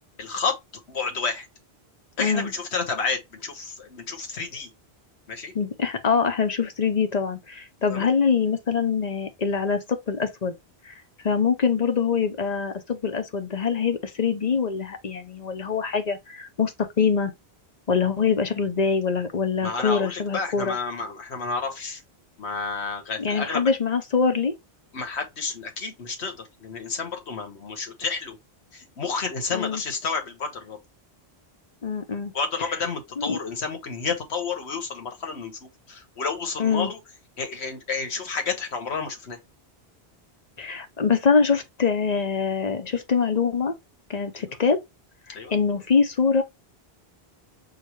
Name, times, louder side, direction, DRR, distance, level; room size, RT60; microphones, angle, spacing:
voice 1, 0.2-0.6 0.9-1.5 2.2-4.7 5.3-5.5 7.9-8.1 19.6-22.0 22.4-23.6 24.9-28.4 28.7-30.8 32.3-37.0 37.4-39.4 44.3-44.6 45.3-45.5, left 4 dB, 85° left, 1.4 m, -30 dB
voice 2, 2.2-2.5 5.5-10.5 10.8-10.9 11.2-17.3 17.9-20.8 23.2-24.5 29.5-29.8 31.8-32.3 32.6-32.7 33.2-33.4 36.6-36.9 40.6-43.7 44.1-44.8 45.5-46.4, left 5 dB, 45° left, 0.8 m, -24 dB
6.6 x 2.3 x 3.0 m
omnidirectional pair, 1.1 m